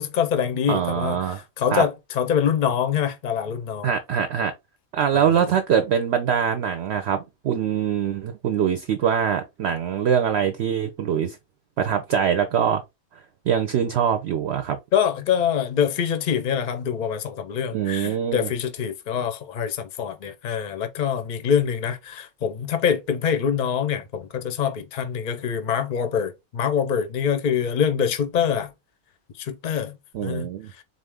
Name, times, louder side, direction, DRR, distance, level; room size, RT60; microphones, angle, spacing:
voice 1, 0.0-3.9 5.1-5.4 14.9-28.7 29.4-30.5, left 8 dB, 55° left, 0.5 m, -25 dB
voice 2, 0.7-1.4 1.7-1.8 3.8-4.5 4.9-11.4 11.8-12.8 13.5-14.8 17.7-18.5 30.1-30.7, right 8 dB, 65° right, 0.7 m, -23 dB
4.1 x 2.5 x 3.4 m
omnidirectional pair, 1.5 m